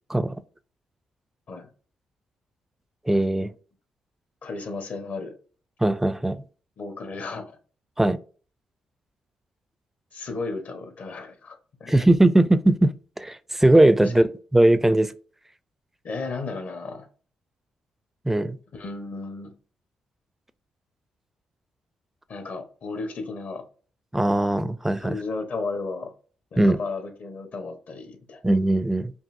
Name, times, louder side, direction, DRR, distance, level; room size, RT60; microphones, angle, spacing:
voice 1, 3.1-3.5 5.8-6.4 8.0-8.2 11.9-12.9 13.2-15.1 18.3-18.6 24.1-25.2 26.6-26.8 28.4-29.1, right 1 dB, 10° right, 0.4 m, -19 dB
voice 2, 4.4-5.3 6.8-7.5 10.1-11.9 14.0-14.1 16.0-17.1 18.7-19.5 22.3-23.6 25.0-26.1 26.5-28.4, left 3 dB, 60° left, 1.0 m, -34 dB
5.4 x 2.6 x 2.6 m
supercardioid pair, 55°, 3 cm